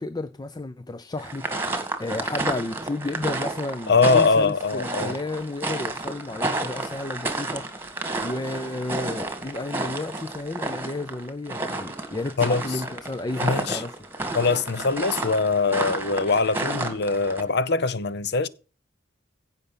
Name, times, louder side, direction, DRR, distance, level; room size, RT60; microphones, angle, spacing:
voice 1, 0.0-14.1, left 2 dB, 20° left, 0.5 m, -32 dB
sound 1, 1.2-17.4, right 2 dB, 10° right, 1.8 m, -31 dB
voice 2, 3.9-5.2 12.4-12.8 13.4-13.8 14.3-18.5, left 4 dB, 55° left, 0.7 m, -22 dB
16.0 x 5.7 x 5.5 m
head